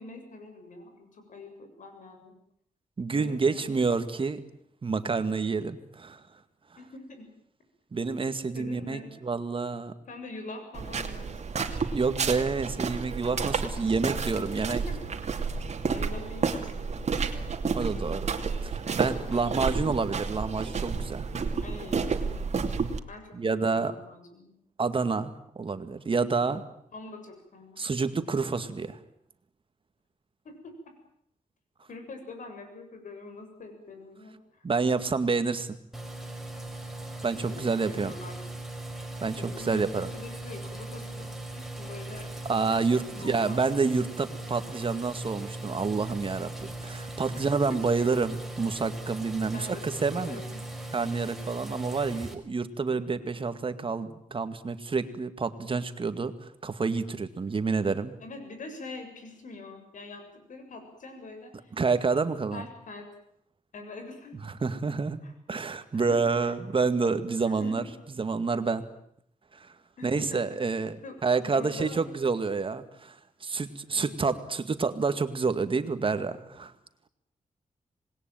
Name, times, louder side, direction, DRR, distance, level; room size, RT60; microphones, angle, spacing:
voice 1, 0.0-2.3 3.1-3.7 6.8-7.3 8.5-9.1 10.1-11.6 13.4-13.9 14.7-15.0 15.9-17.3 19.3-19.4 21.6-22.3 23.1-24.5 26.9-27.8 30.4-30.7 31.9-34.6 37.4-38.4 39.4-41.3 41.5-42.3 43.2-43.6 47.3-48.1 49.5-50.6 58.2-60.2 60.5-61.7 62.5-63.0 63.7-64.4 65.2-65.3 65.9-66.5 67.4-67.9 70.0-70.4 71.0-71.2 71.4-72.0 73.9-74.2, left 2 dB, 75° left, 6 dB, 7.5 m, -44 dB
voice 2, 3.0-4.4 4.8-6.2 7.9-9.9 11.9-14.8 17.7-18.4 18.6-21.3 23.3-23.9 24.8-26.6 27.8-29.0 34.6-35.8 37.2-38.1 39.2-40.1 42.5-50.4 50.9-56.3 56.6-58.1 61.8-62.6 64.6-65.2 65.5-67.8 68.2-68.8 69.6-69.7 70.0-71.0 71.2-73.2 73.4-76.7, right 4 dB, 40° right, 10 dB, 2.2 m, -28 dB
sound 1, 10.7-23.0, right 5 dB, 55° right, 2.7 m, -31 dB
sound 2, 35.9-52.3, right 2 dB, ahead, 4.8 m, -39 dB
27.0 x 20.5 x 9.2 m, 0.71 s
wide cardioid pair, 100°, 13 cm